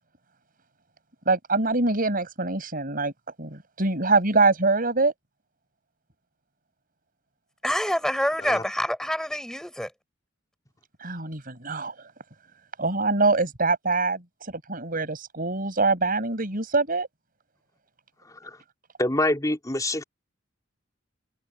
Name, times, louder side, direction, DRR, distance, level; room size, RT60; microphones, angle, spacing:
voice 1, 1.3-3.1 3.4-5.1 11.0-11.9 12.8-17.1, right 3 dB, 45° right, 6.4 m, -24 dB
voice 2, 7.6-9.9, equal, 5° left, 7.2 m, -26 dB
voice 3, 18.3-18.6 19.0-20.0, left 1 dB, 20° left, 3.6 m, -26 dB
head